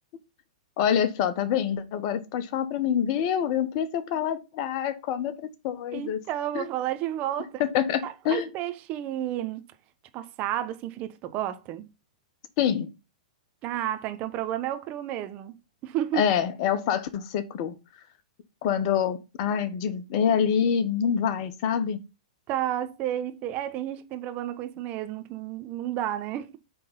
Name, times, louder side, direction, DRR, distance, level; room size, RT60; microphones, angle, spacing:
voice 1, 0.8-6.2 6.5-6.7 7.6-8.5 12.6-12.9 16.1-17.8 18.6-22.0, left 8 dB, 45° left, 1.2 m, -26 dB
voice 2, 5.9-7.6 8.0-9.6 10.1-11.9 13.6-15.5 15.8-16.3 22.5-26.6, right 12 dB, 35° right, 1.0 m, -31 dB
8.3 x 3.8 x 5.5 m
hypercardioid pair, 110°, 4 cm